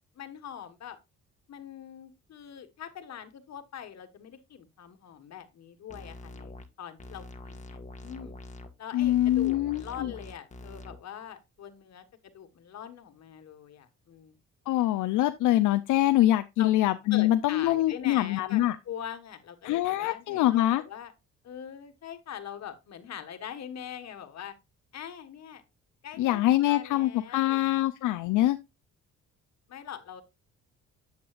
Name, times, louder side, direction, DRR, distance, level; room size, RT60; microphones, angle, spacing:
voice 1, 0.2-1.0 1.5-8.3 8.8-14.4 15.2-15.3 16.6-16.7 17.1-21.1 21.4-24.5 24.9-25.6 26.0-27.7 28.0-28.1 29.7-30.2, left 9 dB, 60° left, 1.6 m, -43 dB
sound 1, 5.9-6.7 7.0-8.7 9.0-11.0, left 2 dB, 25° left, 1.6 m, -44 dB
voice 2, 8.9-10.1 14.7-18.8 19.6-20.8 26.2-28.6, left 14 dB, 85° left, 0.6 m, -24 dB
8.1 x 7.8 x 2.4 m
cardioid pair, 90°, 30 cm